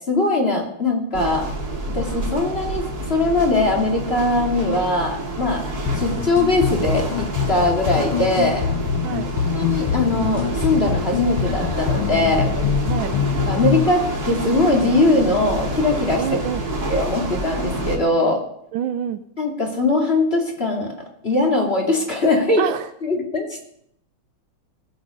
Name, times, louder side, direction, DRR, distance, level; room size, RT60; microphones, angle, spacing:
voice 1, 0.1-1.5 1.9-5.6 5.9-8.6 9.5-12.5 13.3-16.2 16.9-18.4 19.4-20.9 21.2-22.6 23.0-23.5, left 2 dB, 30° left, 0 dB, 2.8 m, -21 dB
sound 1, 1.1-18.0, right 1 dB, 50° right, 2.9 m, -28 dB
sound 2, 5.9-13.9, left 8 dB, 85° left, 1.7 m, -24 dB
voice 2, 12.8-13.2 16.2-16.6 18.7-19.2 22.6-22.9, right 9 dB, 75° right, 10 dB, 1.4 m, -26 dB
19.0 x 8.2 x 5.2 m, 0.73 s
omnidirectional pair, 2.3 m